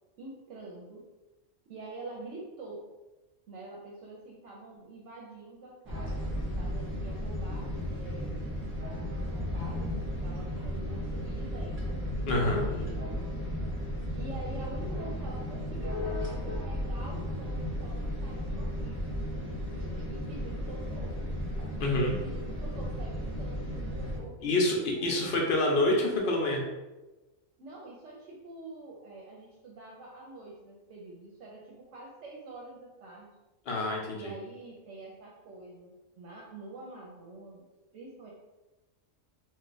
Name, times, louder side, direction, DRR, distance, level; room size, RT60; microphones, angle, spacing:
voice 1, 0.2-1.1 1.7-2.8 3.5-8.5 9.0-13.0 14.2-19.1 19.5-21.3 22.0-24.6 24.9-25.3 27.6-33.3 34.1-37.7 37.9-38.3, right 2 dB, 70° right, -3 dB, 0.9 m, -46 dB
sound 1, 5.8-24.2, equal, 15° right, 0.6 m, -34 dB
voice 2, 12.3-12.6 21.8-22.1 24.4-26.6 33.7-34.3, left 2 dB, 55° left, 0 dB, 0.8 m, -27 dB
2.4 x 2.3 x 3.8 m, 1.1 s
omnidirectional pair, 1.4 m